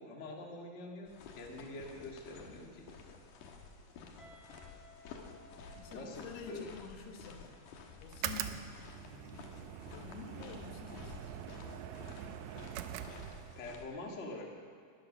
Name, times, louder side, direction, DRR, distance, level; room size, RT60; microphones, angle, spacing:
voice 1, 0.0-2.9 5.6-6.7 13.5-14.6, left 2 dB, 40° left, 0 dB, 1.0 m, -45 dB
sound 1, 1.1-13.8, left 4 dB, 65° left, 2.5 m, -52 dB
Guitar, 4.2-7.0, equal, ahead, 1.8 m, -59 dB
voice 2, 5.8-7.6 8.0-9.5 9.9-11.8, left 6 dB, 80° left, 3 dB, 3.4 m, -50 dB
sound 2, 8.1-13.7, right 11 dB, 80° right, 1.9 m, -43 dB
19.5 x 10.5 x 6.6 m, 2.2 s
omnidirectional pair, 4.6 m